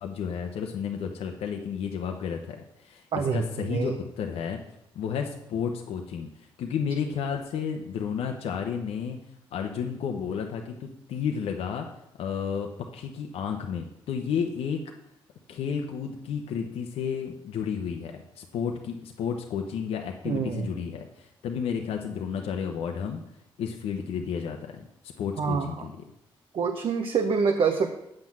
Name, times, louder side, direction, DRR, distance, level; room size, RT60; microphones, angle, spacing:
voice 1, 0.0-4.6 4.9-9.2 9.5-11.9 12.2-14.8 15.5-23.2 23.6-26.0, left 7 dB, 80° left, 3 dB, 0.8 m, -32 dB
voice 2, 3.1-4.0 20.2-20.7 25.4-25.9 26.5-27.9, right 5 dB, 60° right, 4 dB, 0.9 m, -26 dB
7.7 x 5.9 x 7.4 m, 0.83 s
cardioid pair, 75°, 10 cm